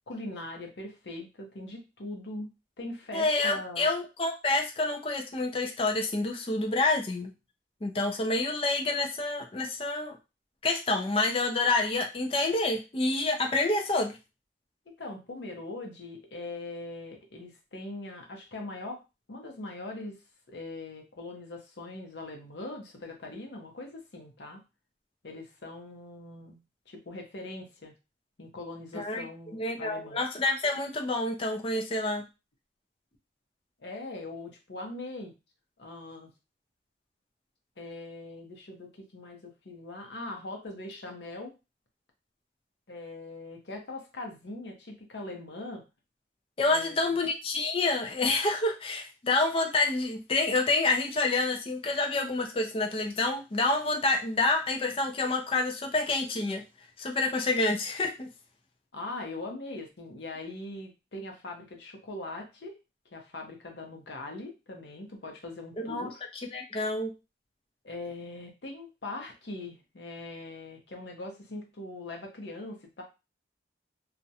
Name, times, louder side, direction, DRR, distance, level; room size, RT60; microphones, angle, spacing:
voice 1, 0.1-2.5 2.8-3.9 15.0-19.0 19.3-20.2 20.5-24.6 25.2-26.6 26.9-27.9 28.4-30.2 33.8-35.3 35.8-36.3 37.8-41.5 42.9-45.8 46.7-47.2 58.9-62.7 63.1-66.2 67.8-73.0, left 2 dB, 70° left, 2 dB, 0.7 m, -41 dB
voice 2, 3.1-7.3 7.8-10.2 10.6-14.2 28.9-29.2 29.5-32.2 46.6-56.6 57.0-58.3 65.8-66.1 66.5-67.1, left 2 dB, 30° left, 3 dB, 0.4 m, -28 dB
2.4 x 2.1 x 2.7 m, 0.27 s
head